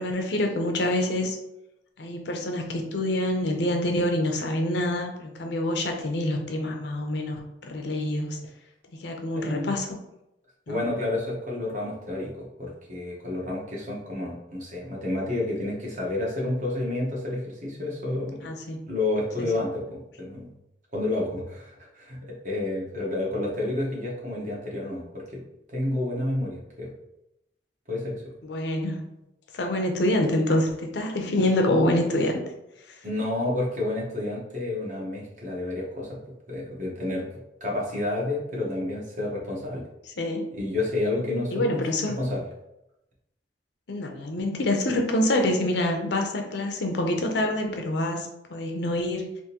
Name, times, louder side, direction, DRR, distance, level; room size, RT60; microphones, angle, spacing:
voice 1, 0.0-1.4 2.0-8.4 8.9-10.0 10.7-10.8 18.4-18.9 19.4-19.6 28.4-29.1 29.5-32.4 32.9-33.0 40.2-40.4 41.5-42.1 43.9-49.3, left 1 dB, 65° left, 3 dB, 0.5 m, -26 dB
voice 2, 9.4-9.7 10.7-18.5 18.8-20.5 20.9-25.0 25.3-25.4 25.7-26.9 27.9-28.2 33.0-36.2 36.5-37.3 37.6-39.9 40.5-41.8 42.2-42.4, left 2 dB, 45° right, -3 dB, 1.0 m, -30 dB
3.6 x 2.5 x 2.8 m, 0.87 s
head